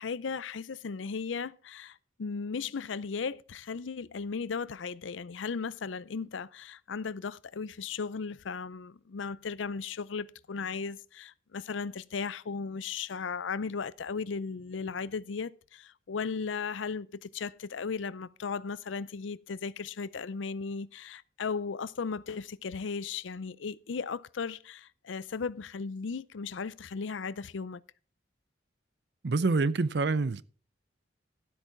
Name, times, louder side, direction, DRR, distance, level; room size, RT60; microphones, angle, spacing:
voice 1, 0.0-27.8, left 5 dB, 85° left, 0.5 m, -36 dB
voice 2, 29.2-30.4, right 3 dB, 60° right, 0.6 m, -26 dB
12.5 x 8.4 x 4.6 m
head